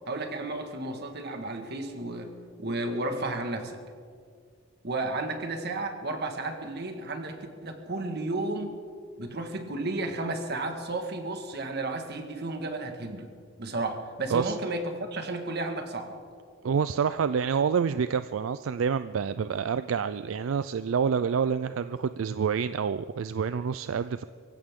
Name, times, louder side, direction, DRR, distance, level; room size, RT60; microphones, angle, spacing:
voice 1, 0.1-2.3 2.6-3.8 4.8-8.8 9.2-13.3 13.6-16.2, right 2 dB, 55° right, 5 dB, 1.7 m, -33 dB
voice 2, 16.6-24.2, right 6 dB, 80° right, 13 dB, 0.4 m, -27 dB
24.5 x 15.5 x 3.7 m, 2.1 s
head